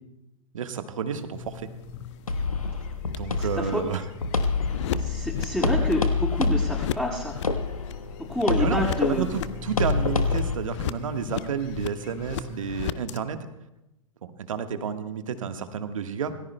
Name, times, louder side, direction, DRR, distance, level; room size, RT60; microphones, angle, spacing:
voice 1, 0.5-1.7 3.1-4.0 8.6-13.5 14.2-16.3, right 7 dB, 70° right, 8 dB, 1.4 m, -31 dB
sound 1, 1.1-13.2, left 10 dB, 60° left, 0.7 m, -37 dB
sound 2, 1.3-12.9, left 4 dB, 40° left, 1.5 m, -45 dB
sound 3, 2.3-10.5, left 4 dB, 90° left, 1.2 m, -27 dB
voice 2, 3.4-3.8 5.0-7.4 8.3-9.3, equal, 5° left, -7 dB, 5.8 m, -28 dB
26.5 x 19.5 x 2.2 m, 0.93 s
figure-of-eight pair, 105°, 18 cm